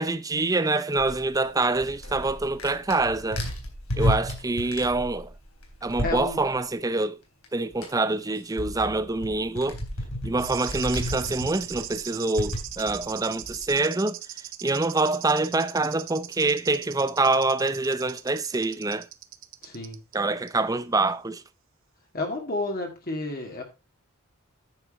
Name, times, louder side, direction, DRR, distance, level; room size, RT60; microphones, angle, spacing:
voice 1, 0.0-3.4 4.0-5.3 5.8-7.2 7.5-9.8 10.2-14.2 14.6-19.1 20.1-21.4, right 2 dB, 15° right, 0.6 m, -25 dB
sound 1, 1.0-6.6 7.4-7.5 7.7-13.8, left 1 dB, 75° left, 3.5 m, -33 dB
voice 2, 6.0-6.4 19.6-20.0 22.1-23.6, left 2 dB, 45° left, 2.2 m, -31 dB
sound 2, 10.4-20.2 20.5-20.6, right 13 dB, 60° right, 0.8 m, -39 dB
9.8 x 7.2 x 4.2 m
head